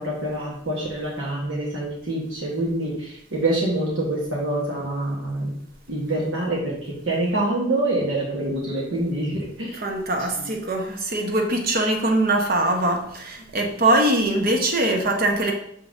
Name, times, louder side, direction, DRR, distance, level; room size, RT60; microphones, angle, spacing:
voice 1, 0.0-5.6 5.9-9.8 10.4-10.5, right 1 dB, 70° right, -4 dB, 1.3 m, -26 dB
voice 2, 9.8-15.5, right 1 dB, 45° right, 3 dB, 1.0 m, -22 dB
6.6 x 5.5 x 2.6 m, 0.72 s
head